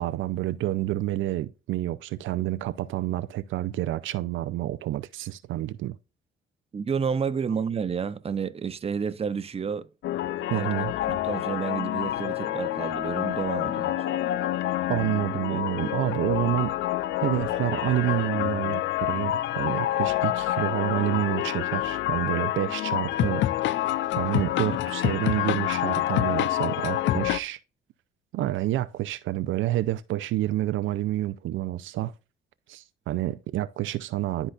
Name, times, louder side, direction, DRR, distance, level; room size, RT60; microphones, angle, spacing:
voice 1, 0.0-6.0 10.5-10.9 14.9-16.7 17.2-23.4 24.2-27.6 28.3-32.1 32.7-34.5, right 14 dB, 80° right, 0.5 m, -28 dB
voice 2, 6.7-9.9 10.5-10.7 11.1-14.0 15.5-15.6, right 6 dB, 30° right, 0.7 m, -30 dB
sound 1, 10.0-27.4, left 13 dB, 70° left, 0.4 m, -27 dB
11.5 x 4.0 x 2.4 m
cardioid pair, 90°, 20 cm